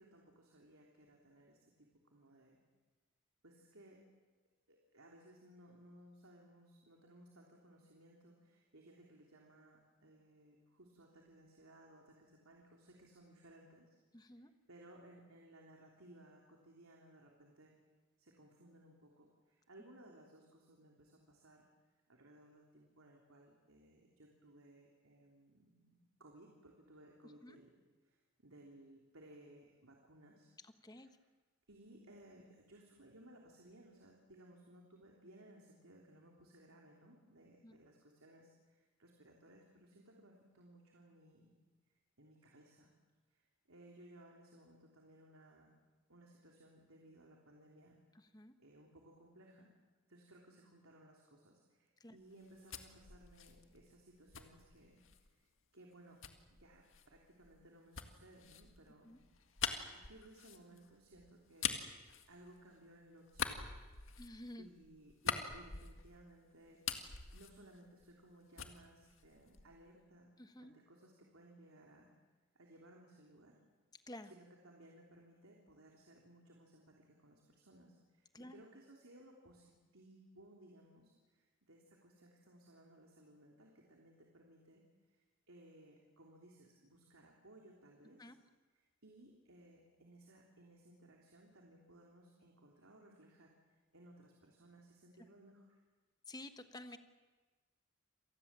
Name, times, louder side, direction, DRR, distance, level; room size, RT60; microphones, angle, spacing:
voice 1, 0.0-2.6 3.4-4.0 4.7-14.0 14.2-17.7 18.2-21.7 22.1-27.7 28.0-30.5 30.9-31.1 31.7-41.5 42.2-42.9 43.3-45.7 46.1-48.0 48.6-49.7 50.1-55.0 55.3-55.5 55.7-56.2 56.5-59.1 59.7-63.6 64.6-70.3 70.6-72.1 72.5-73.6 74.2-88.3 88.7-95.8, right 1 dB, 85° right, 0 dB, 3.4 m, -61 dB
voice 2, 14.1-14.5 27.4-27.6 30.6-31.1 37.6-37.8 48.1-48.5 52.0-52.2 59.0-59.2 64.2-64.7 70.4-70.7 74.1-74.3 78.3-78.6 88.2-88.4 96.3-97.0, left 1 dB, 20° left, 8 dB, 1.3 m, -51 dB
sound 1, 52.3-55.3 56.2-62.9 63.3-66.3 66.6-68.3 68.6-69.9, left 7 dB, 70° left, 1.9 m, -44 dB
27.5 x 19.0 x 7.5 m, 1.3 s
head